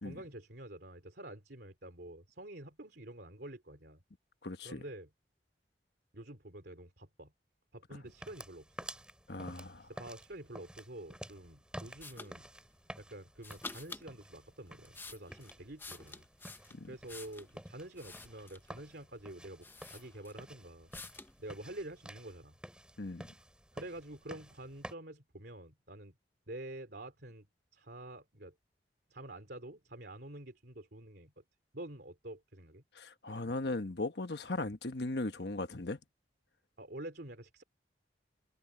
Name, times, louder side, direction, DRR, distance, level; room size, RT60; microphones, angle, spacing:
voice 1, 0.0-4.0 4.6-5.1 6.1-7.3 7.7-8.9 9.8-12.5 13.0-16.3 16.9-20.9 21.4-22.5 23.7-26.1 26.5-27.5 27.7-28.5 29.1-31.3 31.7-32.8 36.8-37.6, right 1 dB, 65° right, 3.1 m, -48 dB
voice 2, 4.4-4.8 9.3-9.9 16.7-16.9 23.0-23.3 32.9-36.0, left 2 dB, 65° left, 1.2 m, -38 dB
sound 1, 8.1-24.9, right 1 dB, 5° right, 7.7 m, -51 dB
sound 2, 12.0-12.3 13.4-14.1 14.7-17.5 17.9-18.7 19.3-19.4 19.6-20.5 20.9-21.3, left 3 dB, 10° left, 0.7 m, -49 dB
head